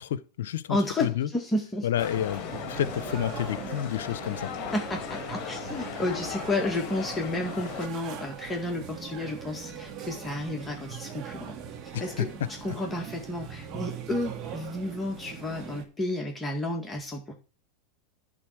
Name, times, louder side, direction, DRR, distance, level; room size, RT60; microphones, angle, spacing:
voice 1, 0.0-1.3 1.8-4.5 11.9-12.5, left 11 dB, 75° left, 0.7 m, -30 dB
voice 2, 0.7-1.9 4.7-11.6 12.0-12.3 12.6-17.3, left 1 dB, 15° left, 1.9 m, -31 dB
sound 1, 2.0-7.9, left 9 dB, 45° left, 1.6 m, -38 dB
sound 2, 2.0-15.8, right 7 dB, 45° right, 1.8 m, -41 dB
11.0 x 3.9 x 7.5 m
hypercardioid pair, 100°, 0 cm